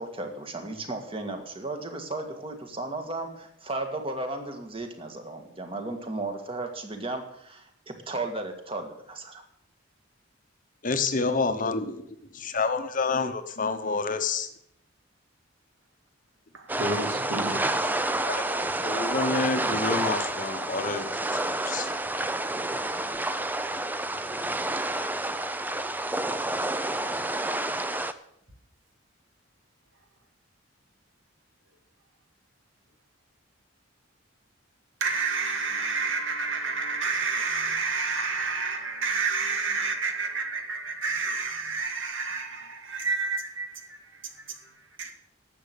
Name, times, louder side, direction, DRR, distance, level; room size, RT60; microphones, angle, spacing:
voice 1, 0.0-9.4, right 2 dB, 25° right, 1.8 m, -35 dB
voice 2, 10.8-12.0 12.3-14.5 18.3-18.4 18.8-21.9, left 4 dB, 40° left, 1.0 m, -28 dB
voice 3, 16.5-17.6 35.0-45.1, right 4 dB, 70° right, 2.1 m, -30 dB
sound 1, 16.7-28.1, right 1 dB, 10° right, 0.5 m, -29 dB
11.5 x 7.8 x 8.5 m
head